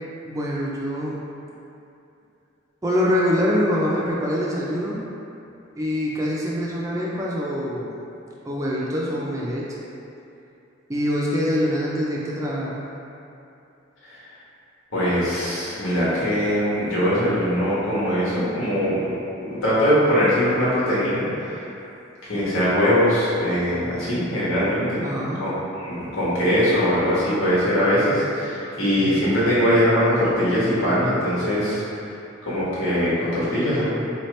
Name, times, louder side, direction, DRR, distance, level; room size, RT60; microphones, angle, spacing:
voice 1, 0.2-1.2 2.8-5.0 5.8-8.0 8.4-9.7 10.9-12.8 25.0-25.4 28.7-29.2, equal, 15° right, -5 dB, 0.4 m, -25 dB
voice 2, 14.9-19.0 19.4-21.7 22.2-25.0 25.4-31.8 32.4-33.9, equal, 80° left, -9 dB, 1.3 m, -21 dB
3.9 x 2.8 x 3.1 m, 2.7 s
head